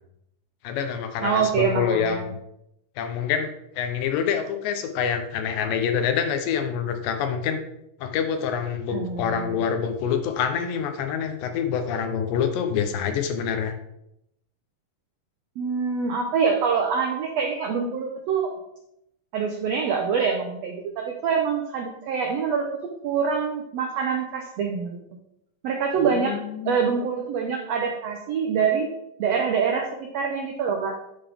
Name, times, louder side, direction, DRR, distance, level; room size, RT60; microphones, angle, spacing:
voice 1, 0.6-2.4 3.0-7.6 8.0-13.7 26.0-26.8, left 7 dB, 90° left, 7 dB, 2.5 m, -26 dB
voice 2, 1.2-2.2 8.9-9.7 15.6-18.5 19.3-22.7 23.0-25.0 25.6-26.3 26.6-28.9 29.2-29.9 30.1-31.0, right 6 dB, 85° right, 2 dB, 1.4 m, -25 dB
11.0 x 3.8 x 3.4 m, 0.82 s
omnidirectional pair, 3.8 m